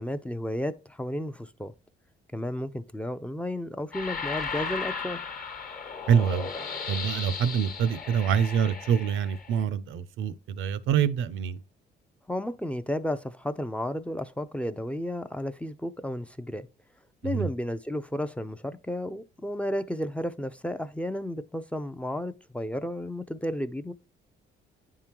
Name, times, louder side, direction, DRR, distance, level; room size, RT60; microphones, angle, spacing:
voice 1, 0.0-1.7 2.3-5.2 12.3-16.7 17.2-23.9, left 1 dB, 5° left, 0.4 m, -33 dB
sound 1, 3.9-9.6, left 5 dB, 45° left, 1.1 m, -36 dB
voice 2, 6.1-6.5 6.9-11.6 17.2-17.5, right 8 dB, 80° right, 0.5 m, -26 dB
9.6 x 3.7 x 2.9 m
cardioid pair, 90°, 20 cm